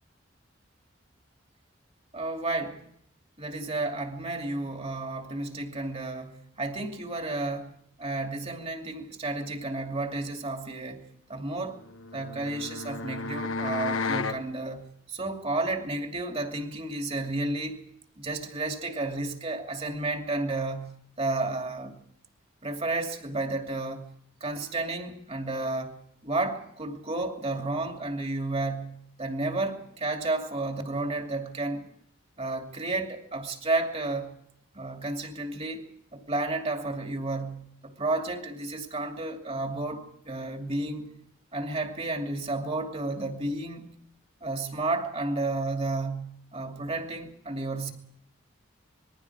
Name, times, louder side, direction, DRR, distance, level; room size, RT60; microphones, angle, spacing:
voice 1, 2.1-2.8 3.4-11.0 11.3-11.8 12.1-17.8 18.2-22.0 22.6-24.1 24.4-31.9 32.4-34.4 34.7-41.1 41.5-43.9 44.4-47.9, right 2 dB, 30° right, 2.6 m, -32 dB
sound 1, 11.8-14.4, left 4 dB, 85° left, 1.2 m, -32 dB
26.5 x 21.5 x 4.8 m
head